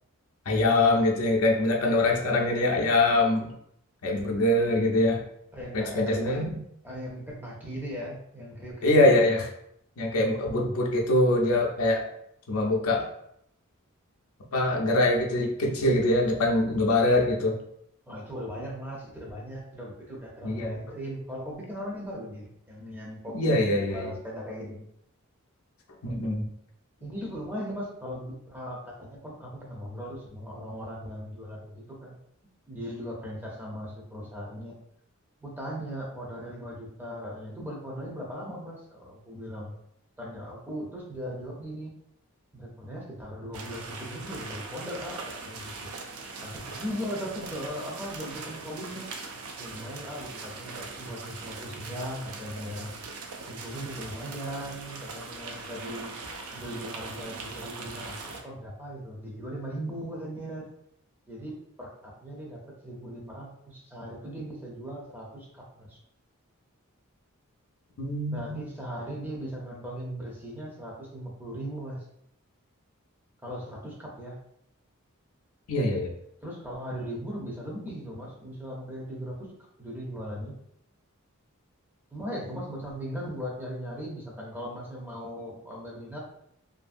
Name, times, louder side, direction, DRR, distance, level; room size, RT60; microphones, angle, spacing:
voice 1, 0.5-3.5 4.0-5.2 5.7-6.6 8.8-9.5 10.0-12.0 12.5-13.1 14.5-17.6 20.4-20.8 23.3-24.1 26.0-26.4 68.0-68.6 75.7-76.1, left 2 dB, 70° left, -1 dB, 0.5 m, -23 dB
voice 2, 5.5-6.5 6.8-9.2 18.1-24.8 27.0-32.2 32.7-34.7 35.4-39.7 40.2-42.0 42.5-45.9 46.4-49.1 49.6-52.9 53.5-60.7 61.3-66.0 68.3-72.0 73.4-74.4 76.4-79.4 79.8-80.5 82.1-86.2, equal, 10° right, -3 dB, 0.5 m, -38 dB
sound 1, 43.5-58.4, right 3 dB, 75° right, 0.4 m, -41 dB
2.6 x 2.6 x 2.4 m, 0.73 s
head